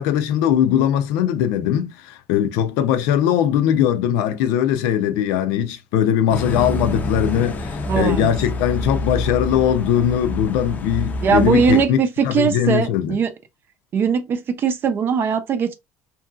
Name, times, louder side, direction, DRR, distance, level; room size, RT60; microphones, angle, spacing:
voice 1, 0.0-12.0 12.2-13.2, left 10 dB, 80° left, 0.5 m, -20 dB
sound 1, 6.3-11.8, left 1 dB, 30° left, 0.5 m, -27 dB
voice 2, 7.9-8.3 11.2-13.3 13.9-15.7, right 6 dB, 40° right, 0.5 m, -20 dB
2.8 x 2.6 x 2.4 m
cardioid pair, 125°, 6 cm